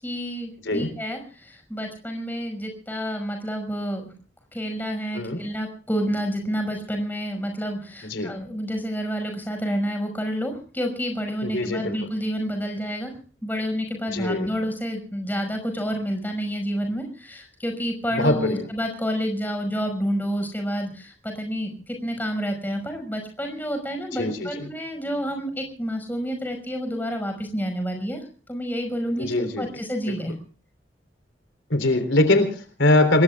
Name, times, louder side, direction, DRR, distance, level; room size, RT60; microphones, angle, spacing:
voice 1, 0.0-4.0 4.5-13.1 13.4-28.2 28.5-30.3, equal, 10° left, 4 dB, 5.6 m, -29 dB
voice 2, 8.0-8.3 11.4-12.0 14.1-14.5 18.1-18.6 24.2-24.5 29.2-29.7 31.7-33.2, left 2 dB, 90° left, 9 dB, 3.7 m, -22 dB
28.0 x 21.0 x 2.4 m, 0.40 s
head